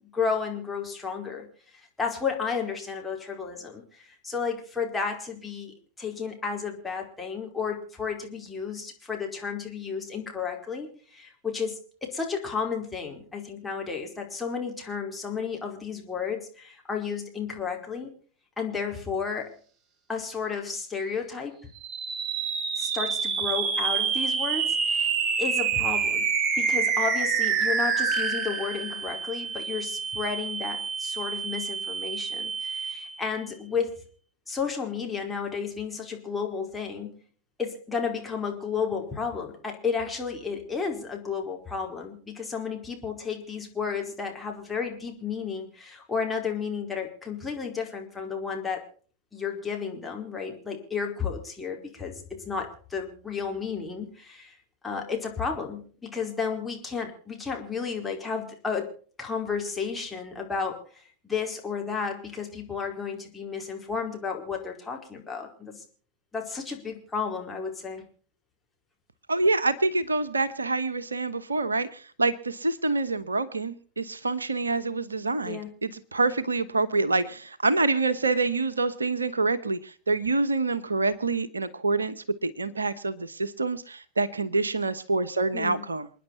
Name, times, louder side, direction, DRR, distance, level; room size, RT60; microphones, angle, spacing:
voice 1, 0.1-1.5 2.0-18.1 18.6-19.5 20.1-21.7 22.8-25.1 25.4-26.2 26.6-33.9 34.5-37.2 37.6-48.8 49.3-54.5 54.8-58.9 59.2-65.8 66.3-68.0 75.4-75.7 85.5-85.8, left 5 dB, 10° left, 0 dB, 4.7 m, -32 dB
sound 1, 21.7-33.3, right 5 dB, 30° right, 2.1 m, -27 dB
voice 2, 69.3-82.1 82.4-86.1, right 3 dB, 75° right, 14 dB, 1.1 m, -26 dB
28.5 x 10.0 x 4.2 m, 0.43 s
figure-of-eight pair, 90°, 0 cm